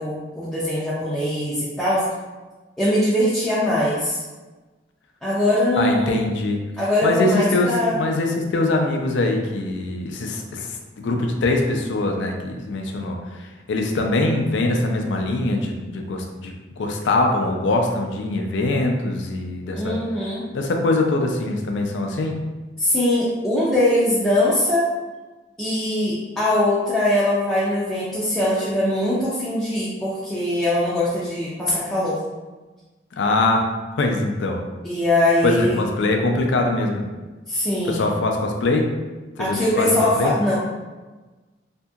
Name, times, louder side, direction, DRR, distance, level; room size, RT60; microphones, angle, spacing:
voice 1, 0.0-2.0 2.8-4.2 5.2-6.3 6.8-8.0 19.7-20.4 22.8-24.9 25.6-32.2 34.8-35.8 37.5-38.0 39.4-40.5, left 1 dB, 5° left, -10 dB, 0.4 m, -21 dB
voice 2, 5.8-6.6 7.0-20.0 20.5-22.4 33.2-33.6 33.9-34.6 35.4-37.1 37.9-38.8 39.4-40.3, left 2 dB, 80° left, 2 dB, 0.4 m, -23 dB
2.8 x 2.6 x 2.3 m, 1.2 s
head